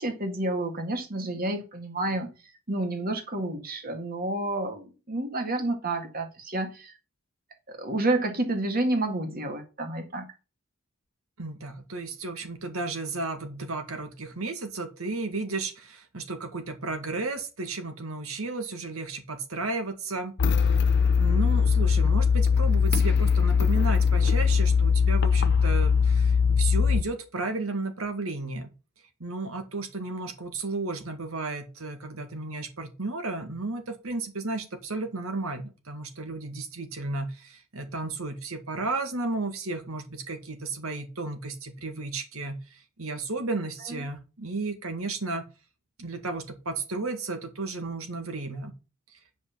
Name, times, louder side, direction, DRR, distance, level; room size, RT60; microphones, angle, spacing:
voice 1, 0.0-2.3 2.7-6.9 7.7-10.3, right 2 dB, 45° right, 1.9 m, -29 dB
voice 2, 11.4-20.3 20.6-20.7 21.2-28.7 29.2-45.4 46.0-48.7 49.1-49.2, right 3 dB, 85° right, 1.9 m, -33 dB
Eerie Ambience, 20.4-27.0, left 6 dB, 55° left, 0.5 m, -21 dB
9.5 x 5.4 x 5.7 m
head